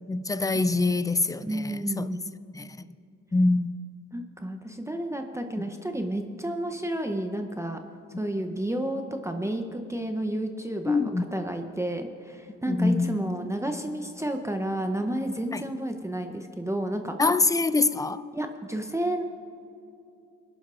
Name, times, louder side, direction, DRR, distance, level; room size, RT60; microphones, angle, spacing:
voice 1, 0.1-2.1 2.5-2.9 3.3-3.7 10.9-11.3 12.7-13.2 15.5-15.6 17.2-18.2, left 3 dB, 10° left, 0.4 m, -25 dB
voice 2, 1.4-2.3 4.1-7.8 8.2-17.2 18.3-19.2, right 1 dB, 10° right, 0.7 m, -31 dB
21.0 x 11.5 x 2.5 m
cardioid pair, 90°, 30 cm